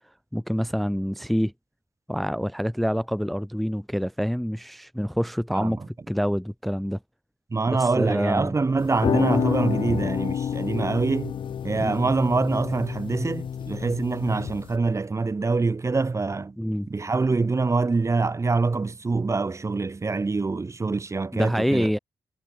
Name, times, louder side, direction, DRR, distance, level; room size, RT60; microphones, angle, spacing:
voice 1, 0.3-1.5 2.1-5.8 6.1-7.0 7.7-8.6 11.8-12.1 16.6-16.9 21.3-22.0, equal, ahead, 0.5 m, -26 dB
voice 2, 5.5-5.9 7.5-11.4 11.6-16.5 16.9-21.9, right 3 dB, 30° right, 0.8 m, -25 dB
sound 1, 8.8-14.8, left 8 dB, 60° left, 0.5 m, -29 dB
supercardioid pair, 45°, 9 cm